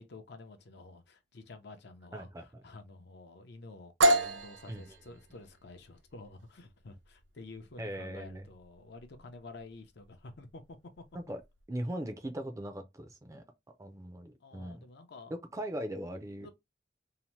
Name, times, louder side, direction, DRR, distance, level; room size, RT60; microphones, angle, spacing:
voice 1, 0.0-11.0 14.4-15.3 16.4-16.5, left 3 dB, 60° left, 0.6 m, -50 dB
voice 2, 2.1-2.6 4.7-5.0 7.8-8.5 11.1-11.4 11.7-13.4 13.8-14.9 15.3-16.5, right 1 dB, 15° right, 0.4 m, -39 dB
sound 1, 4.0-11.6, right 1 dB, 90° right, 0.5 m, -33 dB
2.8 x 2.1 x 3.0 m
head